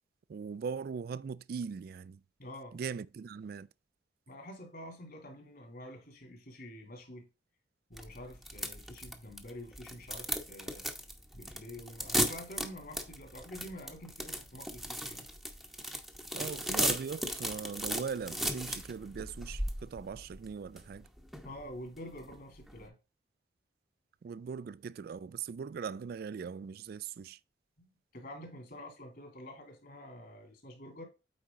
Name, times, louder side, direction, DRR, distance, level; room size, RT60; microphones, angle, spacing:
voice 1, 0.3-2.2 2.7-3.7 16.3-21.1 24.2-27.4, right 6 dB, 55° right, 0.3 m, -40 dB
voice 2, 2.4-2.8 4.3-7.3 7.9-10.9 11.3-15.3 21.4-23.0 27.8-31.0, left 1 dB, 60° left, 2.9 m, -47 dB
sound 1, 7.9-22.9, equal, ahead, 0.8 m, -37 dB
8.5 x 4.5 x 3.7 m
head